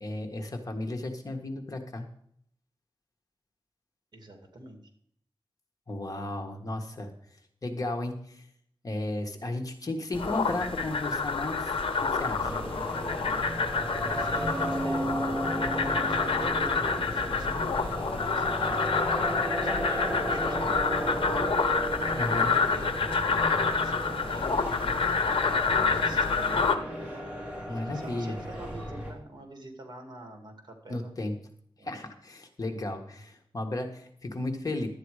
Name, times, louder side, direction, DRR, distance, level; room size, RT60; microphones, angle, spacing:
voice 1, 0.0-2.1 5.9-7.1 7.6-8.4 8.8-11.7 12.0-12.6 22.1-22.5 27.7-28.3 30.9-31.3 31.8-34.9, left 2 dB, 40° left, 4 dB, 1.6 m, -34 dB
voice 2, 4.1-4.8 14.0-18.9 19.3-21.5 22.3-24.7 25.1-27.0 27.7-31.1 31.8-32.0, right 1 dB, 50° right, 4 dB, 2.4 m, -46 dB
sound 1, 10.1-26.8, left 4 dB, 85° left, 0.9 m, -28 dB
sound 2, 12.4-29.1, right 1 dB, 15° right, 3.3 m, -34 dB
12.0 x 9.0 x 4.9 m, 0.66 s
wide cardioid pair, 120°, 9 cm